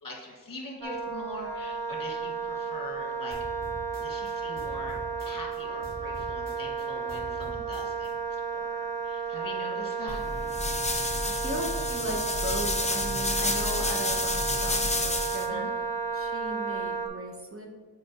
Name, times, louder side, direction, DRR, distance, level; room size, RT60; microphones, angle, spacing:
voice 1, 0.0-3.4 4.0-4.9 5.2-10.2 15.3-15.7, left 2 dB, 55° left, -2 dB, 1.7 m, -42 dB
Wind instrument woodwind instrument, 0.8-17.1, right 5 dB, 80° right, 0.9 m, -33 dB
sound 1, 3.3-5.6 5.8-8.1, equal, 55° right, 1.8 m, -43 dB
sound 2, 10.1-15.5, left 2 dB, 15° left, 0.6 m, -30 dB
voice 2, 11.2-15.7 16.1-17.7, right 1 dB, 35° right, 0 dB, 0.9 m, -37 dB
9.8 x 4.3 x 2.9 m, 1.4 s
wide cardioid pair, 70°, 40 cm